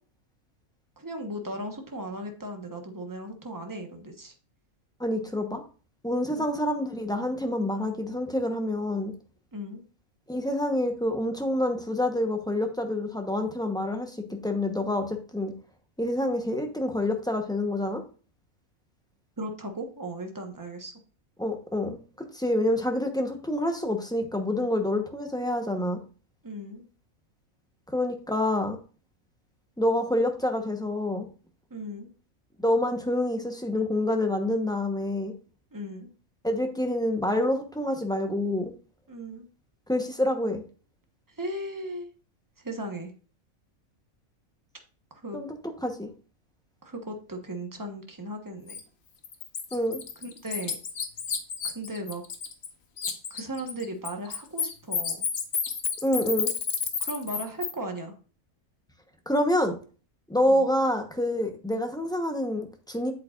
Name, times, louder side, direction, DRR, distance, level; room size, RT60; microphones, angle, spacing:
voice 1, 1.0-4.3 6.3-6.5 9.5-9.8 19.4-20.9 26.4-26.9 31.7-32.1 35.7-36.1 39.1-39.5 41.3-42.1 42.6-43.1 45.1-45.4 46.8-48.8 50.2-50.8 51.6-52.2 53.3-55.3 57.0-58.1 60.5-60.7, right 1 dB, 15° right, 4 dB, 1.1 m, -37 dB
voice 2, 5.0-5.6 6.0-9.1 10.3-15.5 16.0-18.0 21.4-26.0 27.9-28.8 29.8-31.3 32.6-35.3 36.4-38.7 39.9-40.6 45.3-45.5 45.8-46.1 49.7-50.0 56.0-56.5 59.3-59.8 60.3-63.1, left 1 dB, 5° left, 4 dB, 0.9 m, -27 dB
Bird, 48.7-48.8 49.2-52.7 53.0-57.7, left 6 dB, 55° left, 1.2 m, -30 dB
8.2 x 7.7 x 2.5 m, 0.37 s
omnidirectional pair, 1.4 m